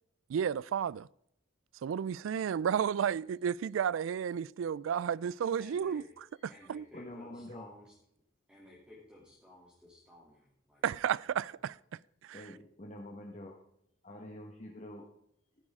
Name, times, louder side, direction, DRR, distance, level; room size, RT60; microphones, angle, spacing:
voice 1, 0.3-1.1 1.8-6.0 6.7-6.9 10.8-11.8 12.2-12.4, right 8 dB, 80° right, 0.3 m, -32 dB
voice 2, 5.6-6.1 6.5-7.9 8.5-10.9, left 1 dB, 5° right, 2.7 m, -56 dB
voice 3, 6.9-7.7 12.3-13.6 14.0-15.1, left 1 dB, 35° left, 1.3 m, -47 dB
13.5 x 9.9 x 3.6 m
head